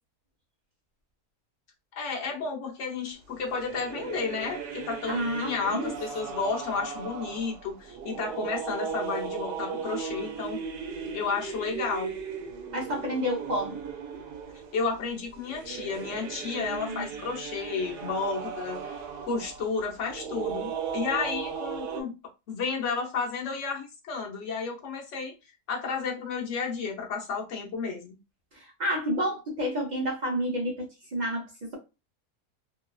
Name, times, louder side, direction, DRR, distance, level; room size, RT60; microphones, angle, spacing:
voice 1, 2.0-10.6 11.1-12.1 14.7-18.9 19.3-22.1 22.5-25.3 25.7-28.2, left 5 dB, 60° left, 1.0 m, -32 dB
sound 1, 3.3-22.0, right 6 dB, 85° right, 1.2 m, -37 dB
voice 2, 5.1-5.9 12.7-13.8 16.5-17.1 28.5-31.7, equal, 45° right, 0.5 m, -30 dB
3.0 x 2.2 x 2.3 m
omnidirectional pair, 1.7 m